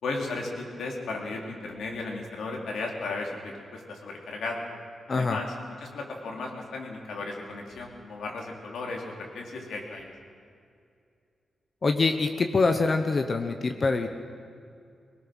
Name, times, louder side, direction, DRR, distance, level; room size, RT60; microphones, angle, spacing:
voice 1, 0.0-4.6 5.1-10.1, left 3 dB, 90° left, 0 dB, 3.5 m, -35 dB
voice 2, 11.8-14.1, left 3 dB, 35° left, 6 dB, 1.0 m, -24 dB
22.5 x 19.5 x 6.2 m, 2.4 s
wide cardioid pair, 140°, 0 cm